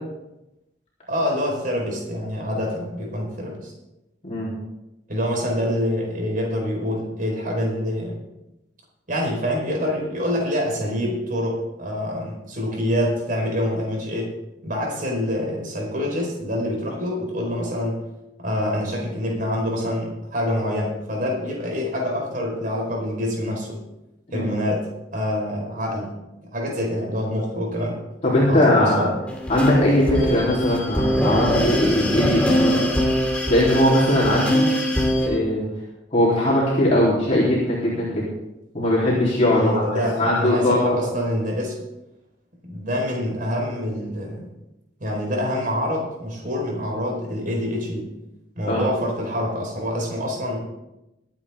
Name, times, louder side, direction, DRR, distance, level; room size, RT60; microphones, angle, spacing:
voice 1, 1.1-3.7 5.1-8.2 9.1-14.3 14.6-18.0 18.4-23.8 24.3-26.2 26.5-28.0 28.4-29.1 39.5-41.8 42.6-44.5 45.0-48.1 48.6-50.6, equal, 50° right, 0 dB, 4.6 m, -26 dB
voice 2, 28.2-29.1 29.5-32.8 33.5-34.7 35.3-35.6 36.1-38.3 38.7-39.8 40.2-40.8 48.7-48.8, left 1 dB, 40° left, -7 dB, 3.5 m, -20 dB
sound 1, 29.3-35.3, equal, 5° left, 2.6 m, -22 dB
22.5 x 8.9 x 3.7 m, 0.94 s
head